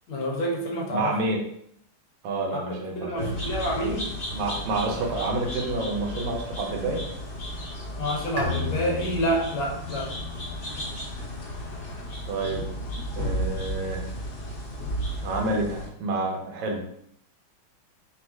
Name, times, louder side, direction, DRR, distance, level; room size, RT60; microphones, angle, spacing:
voice 1, 0.1-1.2 2.5-2.6 3.0-4.1 8.0-10.1, equal, 80° left, 0 dB, 1.7 m, -28 dB
voice 2, 0.9-1.4 2.2-3.3 4.3-7.0 12.3-12.7 13.2-14.1 15.2-16.9, right 2 dB, 75° right, 1 dB, 1.6 m, -28 dB
sound 1, 3.2-15.9, equal, 45° left, 0.7 m, -34 dB
Bowed string instrument, 8.4-11.8, left 2 dB, 50° right, 0.9 m, -35 dB
4.2 x 2.4 x 4.5 m, 0.72 s
omnidirectional pair, 2.2 m